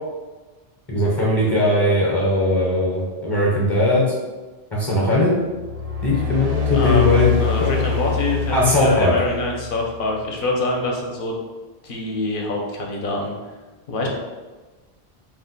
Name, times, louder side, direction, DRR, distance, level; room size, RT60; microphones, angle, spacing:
voice 1, 0.9-4.0 4.7-5.3 6.0-7.3 7.6-7.7 8.5-9.1, left 1 dB, 30° left, -5 dB, 0.6 m, -19 dB
sound 1, 5.4-10.1, left 5 dB, 50° right, 0.5 m, -25 dB
voice 2, 6.7-11.3 11.8-13.3 13.9-14.1, left 2 dB, 60° left, 0 dB, 0.7 m, -25 dB
2.7 x 2.1 x 3.8 m, 1.3 s
omnidirectional pair, 1.0 m